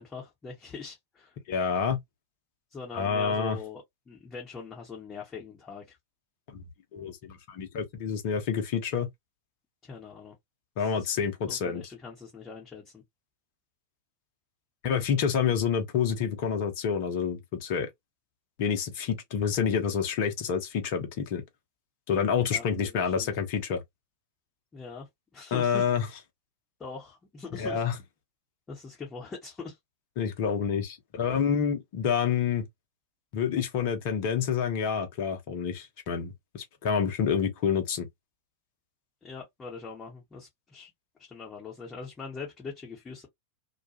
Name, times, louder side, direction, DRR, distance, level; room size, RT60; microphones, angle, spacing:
voice 1, 0.0-1.4 2.7-6.0 9.8-10.3 10.8-11.2 11.5-13.0 22.3-22.6 22.9-23.3 24.7-25.9 26.8-27.9 28.7-29.8 39.2-40.9 41.2-43.3, left 4 dB, 15° left, 0.9 m, -42 dB
voice 2, 1.5-2.0 2.9-3.6 6.5-6.6 6.9-9.1 10.8-11.8 14.8-17.9 18.6-21.4 22.1-23.8 25.5-26.1 27.5-27.9 30.2-32.7 33.3-38.1, left 7 dB, 45° left, 0.7 m, -28 dB
2.3 x 2.3 x 2.8 m
figure-of-eight pair, 90°, 0 cm